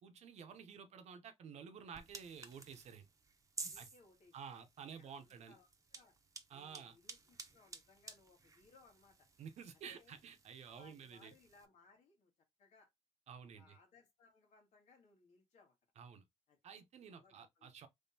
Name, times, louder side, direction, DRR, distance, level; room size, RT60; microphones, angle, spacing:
voice 1, 0.0-3.1 3.8-3.9 4.3-5.6 6.5-6.9 9.4-11.3 13.3-13.8 16.0-16.2 16.6-17.9, right 7 dB, 75° right, 0.7 m, -52 dB
sound 1, 1.9-11.7, right 4 dB, 30° right, 0.8 m, -54 dB
voice 2, 3.6-4.3 4.8-6.1 6.5-9.2 9.9-10.2 10.6-12.3 12.6-12.9 13.6-15.7 16.5-16.6 17.1-17.7, left 4 dB, 90° left, 1.7 m, -66 dB
3.6 x 3.2 x 2.7 m
cardioid pair, 95°, 12 cm